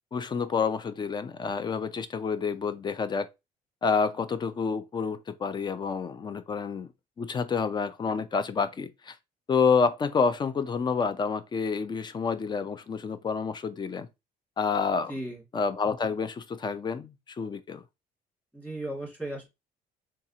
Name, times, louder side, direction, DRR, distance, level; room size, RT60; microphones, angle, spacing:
voice 1, 0.1-3.3 3.8-6.9 7.2-9.2 9.5-14.1 14.6-15.1 15.5-17.8, left 5 dB, 25° left, 0.4 m, -28 dB
voice 2, 15.1-15.4 18.5-19.5, right 1 dB, 10° left, 2.2 m, -35 dB
3.9 x 2.3 x 2.8 m
cardioid pair, 110°, 17 cm